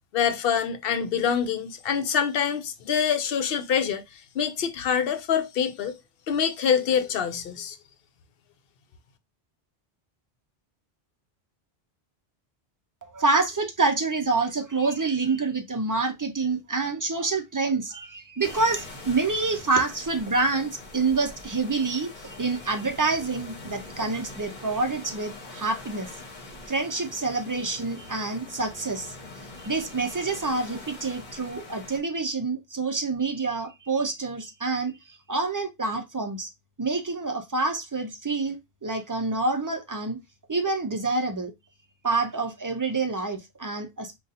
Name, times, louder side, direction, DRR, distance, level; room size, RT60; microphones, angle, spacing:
voice 1, 0.1-6.0 6.3-7.8, left 7 dB, 70° left, 0.7 m, -25 dB
voice 2, 13.0-26.1 26.7-29.1 29.6-36.5 36.8-40.2 40.5-41.5 42.0-44.2, right 3 dB, 35° right, 0.3 m, -27 dB
sound 1, 18.4-32.0, left 2 dB, 50° left, 1.0 m, -43 dB
2.6 x 2.3 x 3.9 m
omnidirectional pair, 1.0 m